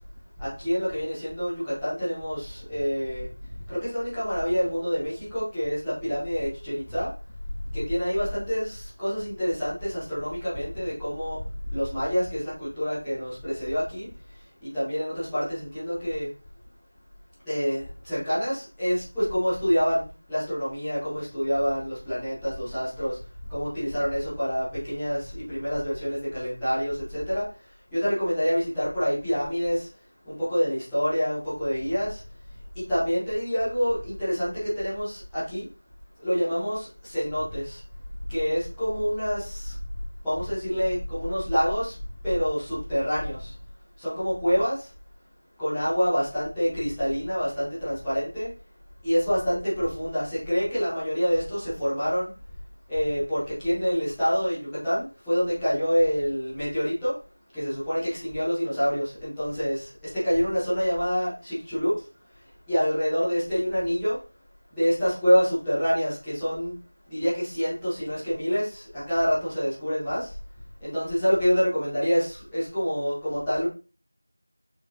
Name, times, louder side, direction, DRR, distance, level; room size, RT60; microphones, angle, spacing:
voice 1, 0.4-3.3 3.7-7.1 7.7-11.4 11.7-14.1 14.7-16.3 17.4-20.0 20.3-23.2 23.5-27.4 27.9-29.9 30.3-32.2 32.9-35.6 36.2-37.8 38.3-39.7 40.2-41.9 42.2-43.5 44.0-44.7 45.6-48.5 49.0-52.3 52.9-57.1 57.5-59.9 60.2-61.9 62.7-64.2 64.7-66.7 67.1-70.3 70.8-73.7, equal, ahead, -21 dB, 0.8 m, -27 dB
4.8 x 3.5 x 2.8 m, 0.32 s
figure-of-eight pair, 180°, 0 cm